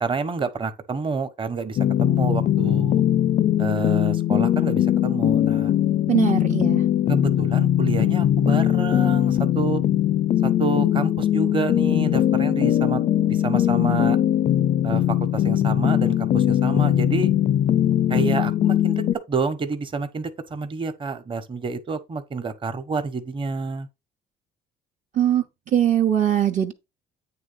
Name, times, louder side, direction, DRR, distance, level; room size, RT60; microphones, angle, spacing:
voice 1, 0.0-3.0 3.6-5.7 7.1-9.8 10.4-13.0 13.3-14.2 14.8-17.3 18.1-23.9, right 4 dB, 30° right, 1.2 m, -28 dB
sound 1, 1.8-19.1, left 11 dB, 45° left, 0.4 m, -20 dB
voice 2, 6.1-6.8 25.1-25.4 25.7-26.7, right 10 dB, 50° right, 1.0 m, -21 dB
8.8 x 3.3 x 5.6 m
cardioid pair, 110°, 17 cm